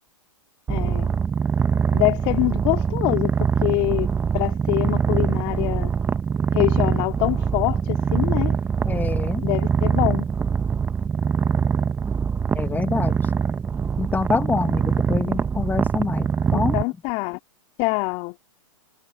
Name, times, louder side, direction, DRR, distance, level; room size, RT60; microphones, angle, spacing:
voice 1, 0.7-1.1 1.9-4.1 4.3-5.9 6.5-8.5 9.4-10.3 16.5-17.4 17.8-18.3, left 27 dB, 40° left, 3.2 m, -24 dB
Purr, 0.7-16.8, right 6 dB, 10° right, 1.2 m, -23 dB
voice 2, 8.9-9.4 12.5-13.2 14.0-16.8, left 4 dB, 10° left, 1.5 m, -26 dB
hypercardioid pair, 125°, 18 cm